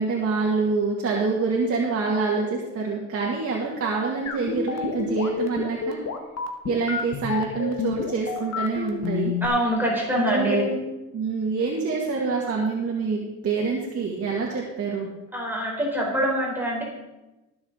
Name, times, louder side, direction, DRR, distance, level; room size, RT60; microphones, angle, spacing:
voice 1, 0.0-6.0 6.6-9.3 10.2-10.8 11.1-15.1, right 4 dB, 50° right, -3 dB, 2.1 m, -26 dB
sound 1, 4.3-9.5, left 7 dB, 60° left, 1.6 m, -29 dB
voice 2, 9.4-10.7 15.3-16.8, equal, 5° right, -3 dB, 4.0 m, -24 dB
18.5 x 7.1 x 4.0 m, 1.0 s
cardioid pair, 90°, 30 cm